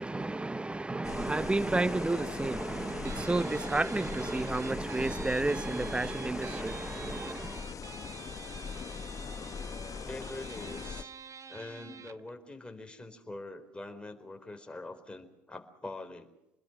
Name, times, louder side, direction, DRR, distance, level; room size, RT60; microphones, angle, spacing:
voice 1, 0.0-7.7, right 2 dB, 10° right, 0.8 m, -31 dB
sound 1, 1.0-11.0, left 6 dB, 35° left, 1.0 m, -41 dB
Guitar, 3.0-12.3, right 6 dB, 35° right, 1.3 m, -48 dB
voice 2, 10.0-11.1 11.5-16.3, left 2 dB, 10° left, 4.4 m, -44 dB
28.0 x 21.0 x 6.1 m
hypercardioid pair, 70°, 9 cm